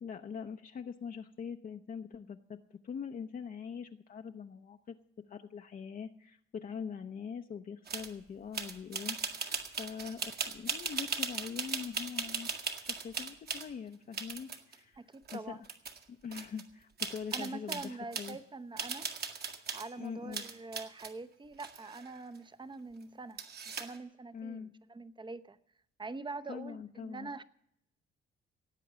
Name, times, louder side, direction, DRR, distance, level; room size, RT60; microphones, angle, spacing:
voice 1, 0.0-5.0 5.3-12.5 12.8-15.0 15.3-15.7 16.1-18.4 20.0-20.4 24.3-24.7 26.5-27.3, left 6 dB, 45° left, 4 dB, 0.8 m, -43 dB
sound 1, 7.9-8.1 8.5-13.7 14.1-14.8 15.3-15.4 15.6-16.0 16.3-16.6 17.0-18.3 18.8-19.9 20.3-21.1 21.6-22.4 23.4-24.0, right 5 dB, 50° right, 1.9 m, -38 dB
voice 2, 15.0-15.6 17.3-19.1 19.7-25.6 26.0-27.4, right 3 dB, 25° right, 12 dB, 0.8 m, -44 dB
17.5 x 8.5 x 6.8 m, 0.74 s
cardioid pair, 90°, 20 cm